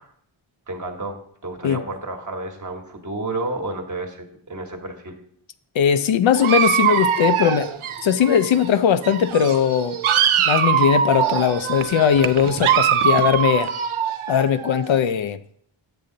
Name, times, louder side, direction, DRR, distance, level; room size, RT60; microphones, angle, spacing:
voice 1, 0.7-5.2, right 2 dB, 40° right, 3 dB, 1.3 m, -31 dB
voice 2, 5.7-7.7 8.0-10.0 10.5-13.7 14.3-15.4, left 8 dB, 70° left, 12 dB, 0.6 m, -19 dB
Dog, 6.3-8.7 9.0-15.0, right 9 dB, 85° right, 0.7 m, -22 dB
8.5 x 6.9 x 3.8 m, 0.64 s
wide cardioid pair, 100°, 48 cm